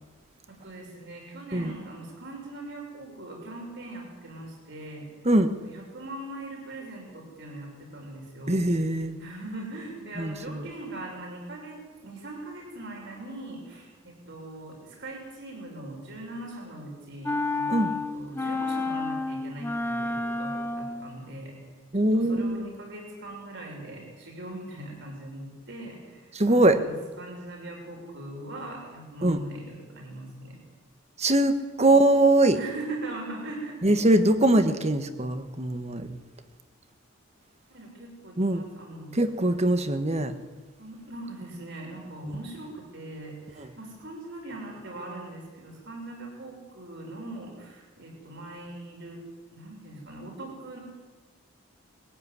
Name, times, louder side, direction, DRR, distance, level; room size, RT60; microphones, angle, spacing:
voice 1, 0.5-5.1 5.6-8.7 9.2-21.6 21.9-30.6 32.5-34.4 37.7-39.2 40.8-49.2 49.5-50.8, right 2 dB, 60° right, 0 dB, 6.6 m, -41 dB
voice 2, 8.5-9.2 10.2-10.6 17.7-17.9 21.9-22.7 26.3-26.8 29.2-29.4 31.2-32.6 33.8-36.1 38.4-38.6 39.1-40.3 42.2-42.4 43.6-43.7, right 1 dB, 30° right, 9 dB, 1.4 m, -22 dB
sound 1, 17.3-21.2, left 2 dB, 10° left, 1.0 m, -30 dB
21.0 x 16.0 x 9.6 m, 1.4 s
head